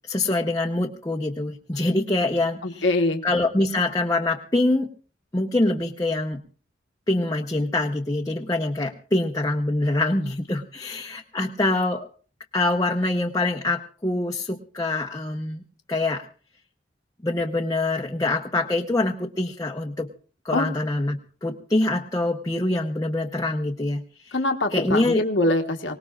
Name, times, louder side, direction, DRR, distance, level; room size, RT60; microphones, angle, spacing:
voice 1, 0.1-2.8 3.2-4.9 5.3-6.4 7.1-12.1 12.5-15.6 15.9-16.3 17.2-20.1 20.4-24.3 24.7-25.2, left 2 dB, 20° left, 1 dB, 0.8 m, -25 dB
voice 2, 2.6-3.2 20.5-20.7 24.3-25.9, left 2 dB, 80° left, 4 dB, 1.3 m, -23 dB
24.5 x 19.0 x 2.4 m, 0.40 s
head